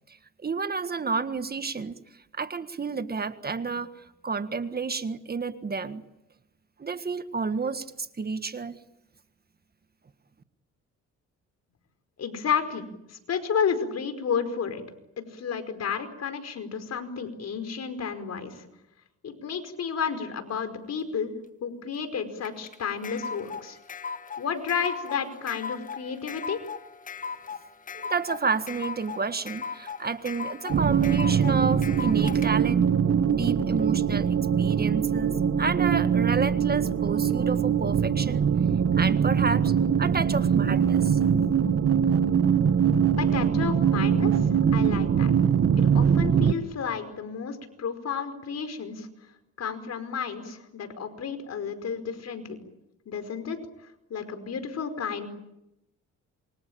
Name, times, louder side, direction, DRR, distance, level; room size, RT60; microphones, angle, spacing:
voice 1, 0.4-2.0 2.3-3.9 4.2-6.0 6.8-8.8 27.9-32.9 33.3-38.4 39.0-39.7 40.0-41.2, right 4 dB, 30° right, 11 dB, 1.6 m, -30 dB
voice 2, 12.2-14.8 15.2-18.6 19.2-21.3 21.6-23.8 24.4-26.6 43.2-45.3 45.8-49.1 49.6-52.6 53.0-53.6 54.1-55.3, left 6 dB, 55° left, 9 dB, 5.0 m, -31 dB
sound 1, 22.4-32.5, left 5 dB, 25° left, 1.6 m, -37 dB
sound 2, 30.7-46.5, right 7 dB, 50° right, 1.6 m, -22 dB
27.5 x 24.5 x 8.8 m, 0.89 s
cardioid pair, 90°, 30 cm